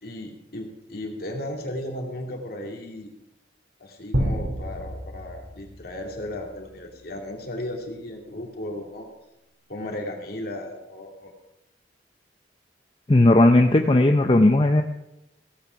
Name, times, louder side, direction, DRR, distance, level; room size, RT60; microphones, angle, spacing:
voice 1, 0.0-3.1 3.8-9.1 9.7-11.3, left 1 dB, 55° left, 1 dB, 2.5 m, -35 dB
sound 1, 4.1-6.7, right 1 dB, 60° right, 2.2 m, -29 dB
voice 2, 13.1-14.8, left 2 dB, 25° left, 5 dB, 0.5 m, -16 dB
16.0 x 8.7 x 5.8 m, 0.91 s
head